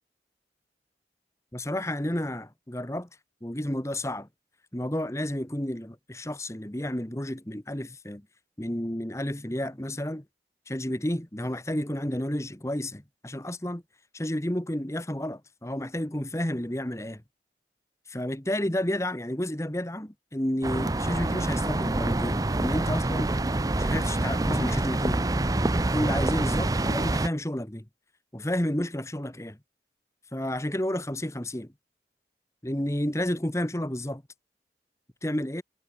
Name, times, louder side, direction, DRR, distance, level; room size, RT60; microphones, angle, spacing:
voice 1, 1.5-3.1 3.4-4.3 4.7-8.2 8.6-10.2 10.7-13.8 14.1-17.2 18.1-23.3 23.8-25.2 25.8-27.8 28.3-29.6 30.3-31.7 32.6-34.2 35.2-35.6, left 1 dB, 15° left, 1.5 m, -31 dB
sound 1, 20.6-27.3, right 2 dB, 20° right, 0.5 m, -26 dB
head